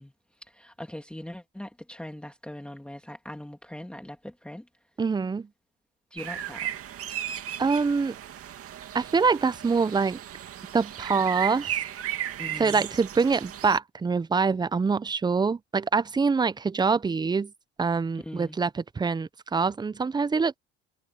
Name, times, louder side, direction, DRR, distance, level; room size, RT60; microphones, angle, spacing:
voice 1, 0.0-4.7 6.1-6.7 12.4-12.9 18.2-18.6, left 1 dB, 5° left, 2.4 m, -41 dB
voice 2, 5.0-5.5 7.6-8.1 8.9-10.2 10.7-11.7 12.6-17.5 17.8-18.7 19.0-20.6, right 5 dB, 15° right, 0.6 m, -25 dB
sound 1, 6.2-13.8, right 11 dB, 45° right, 2.4 m, -35 dB
supercardioid pair, 95°, 31 cm